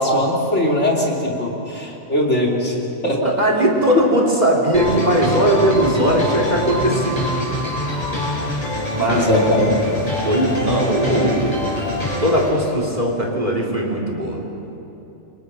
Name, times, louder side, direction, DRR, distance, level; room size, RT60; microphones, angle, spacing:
voice 1, 0.0-2.7 3.0-3.2 9.1-9.8, left 1 dB, 55° left, -2 dB, 3.6 m, -20 dB
voice 2, 3.2-7.2 8.9-9.3 10.2-11.6 12.2-14.4, right 1 dB, 30° right, -1 dB, 4.0 m, -19 dB
sound 1, 4.7-12.5, left 1 dB, 25° left, 8.2 m, -25 dB
29.5 x 24.0 x 6.3 m, 3.0 s
omnidirectional pair, 1.5 m